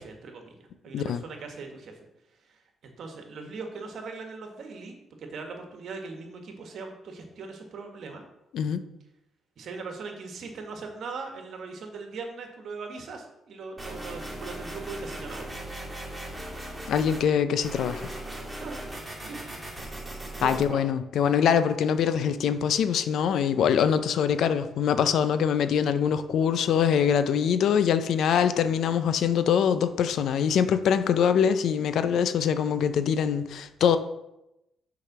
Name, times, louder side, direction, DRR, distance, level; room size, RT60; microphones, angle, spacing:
voice 1, 0.0-2.0 2.4-8.2 9.6-15.5 18.6-18.8 19.2-19.5 20.3-20.9, right 4 dB, 65° right, 3 dB, 1.6 m, -40 dB
sound 1, 13.8-17.3 17.6-20.6, right 1 dB, 10° right, 2.1 m, -38 dB
voice 2, 16.9-18.0 20.4-34.0, left 8 dB, 70° left, 11 dB, 0.6 m, -23 dB
6.6 x 4.9 x 6.0 m, 0.88 s
cardioid pair, 90°, 0 cm